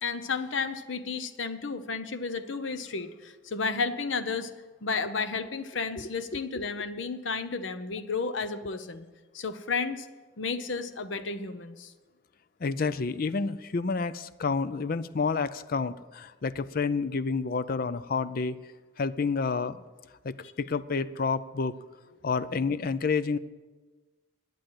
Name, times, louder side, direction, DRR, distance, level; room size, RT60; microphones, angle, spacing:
voice 1, 0.0-4.5 4.8-9.1 9.3-10.1 10.4-11.9, left 4 dB, 75° left, 11 dB, 0.8 m, -32 dB
voice 2, 12.6-18.6 19.0-19.8 20.2-21.7 22.2-23.4, left 4 dB, 50° left, 15 dB, 0.5 m, -29 dB
11.5 x 8.9 x 7.8 m, 1.3 s
head